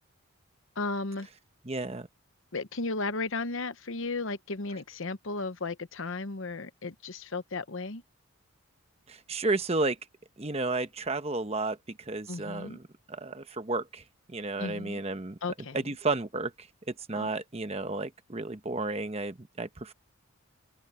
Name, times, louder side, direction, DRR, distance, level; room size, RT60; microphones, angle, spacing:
voice 1, 0.8-1.3 2.5-8.0 12.3-12.8 14.6-15.0 15.4-15.8 17.1-17.3, left 3 dB, 60° left, 1.0 m, -34 dB
voice 2, 1.6-2.1 9.1-10.0 10.4-14.0 14.3-15.4 15.7-19.9, right 3 dB, 30° right, 1.0 m, -32 dB
open air
head